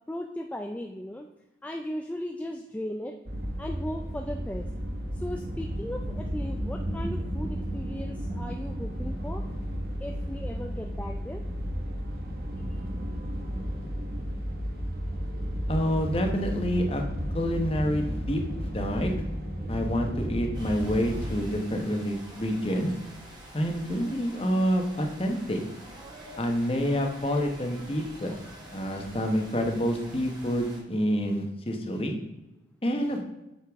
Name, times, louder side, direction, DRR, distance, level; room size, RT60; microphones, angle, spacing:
voice 1, 0.1-1.3 1.6-3.2 3.6-4.7 5.1-9.4 10.0-11.4 12.7-12.8, equal, 10° left, 2 dB, 0.3 m, -37 dB
sound 1, 3.3-21.3, equal, 55° right, 1.2 m, -33 dB
voice 2, 15.7-17.0 17.3-19.1 19.7-22.9 23.5-25.6 26.4-28.3 28.7-32.1 32.8-33.2, equal, 30° left, 3 dB, 1.0 m, -28 dB
sound 2, 20.5-30.8, right 1 dB, 25° right, 1.7 m, -47 dB
8.2 x 6.6 x 3.5 m, 0.97 s
head